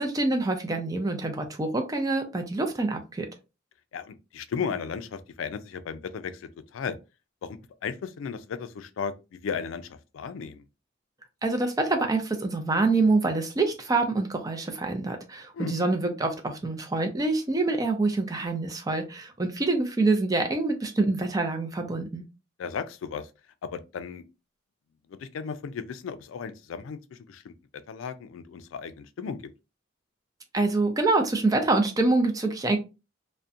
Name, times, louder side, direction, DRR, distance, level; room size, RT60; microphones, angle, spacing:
voice 1, 0.0-3.3 11.4-22.2 30.5-32.8, right 3 dB, 20° right, 0.4 m, -26 dB
voice 2, 3.9-7.0 7.4-10.6 15.5-15.7 22.6-23.3 23.6-24.2 25.1-27.5 27.9-29.4, left 6 dB, 85° left, 0.3 m, -35 dB
2.6 x 2.1 x 2.4 m
head